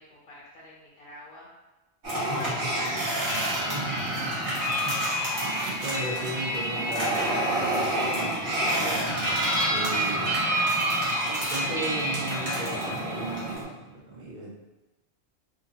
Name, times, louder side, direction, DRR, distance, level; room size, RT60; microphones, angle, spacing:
voice 1, 0.0-1.5 2.1-4.3, left 1 dB, 60° left, -5 dB, 0.8 m, -42 dB
sound 1, 2.0-13.6, right 1 dB, 85° right, 1.4 m, -29 dB
sound 2, 3.2-13.5, equal, 65° right, 1.3 m, -31 dB
voice 2, 4.2-5.0 5.4-9.2 9.7-10.4 11.2-14.5, right 2 dB, 45° right, -5 dB, 0.9 m, -37 dB
2.8 x 2.7 x 2.7 m, 1.1 s
omnidirectional pair, 1.1 m